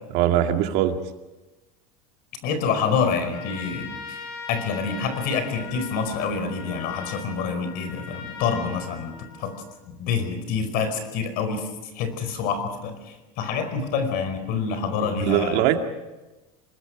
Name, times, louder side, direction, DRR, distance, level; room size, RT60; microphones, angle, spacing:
voice 1, 0.1-0.9 15.2-15.8, right 12 dB, 60° right, 5 dB, 2.2 m, -21 dB
voice 2, 2.4-11.7 11.9-15.7, left 5 dB, 55° left, 10 dB, 4.9 m, -27 dB
Trumpet, 3.2-9.8, left 5 dB, 70° left, 7.5 m, -39 dB
26.5 x 20.0 x 6.1 m, 1.1 s
supercardioid pair, 145°, 18 cm